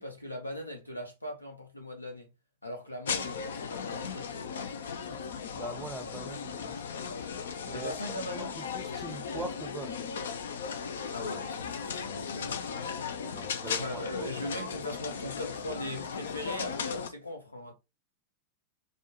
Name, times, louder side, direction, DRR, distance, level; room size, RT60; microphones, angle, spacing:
voice 1, 0.0-2.3 2.6-4.5 6.2-6.3 7.7-8.5 11.1-12.6 13.7-17.7, left 1 dB, 85° left, 1.0 m, -39 dB
sound 1, 3.0-17.1, left 6 dB, 65° left, 0.4 m, -37 dB
voice 2, 5.5-6.9 7.6-7.9 8.3-10.1 13.2-14.3, right 2 dB, 10° right, 0.6 m, -42 dB
4.1 x 2.3 x 3.0 m
figure-of-eight pair, 90°, 0 cm